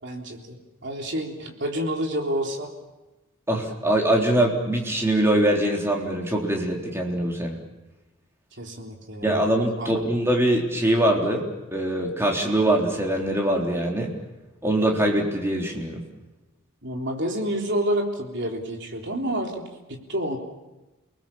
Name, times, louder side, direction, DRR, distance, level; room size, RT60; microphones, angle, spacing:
voice 1, 0.0-2.7 8.6-9.4 9.8-9.9 16.8-20.4, equal, 55° right, 2 dB, 3.7 m, -29 dB
voice 2, 3.5-7.6 9.2-11.4 11.7-14.1 14.6-16.0, right 1 dB, 10° right, 0 dB, 3.6 m, -23 dB
29.5 x 20.0 x 7.2 m, 1.1 s
head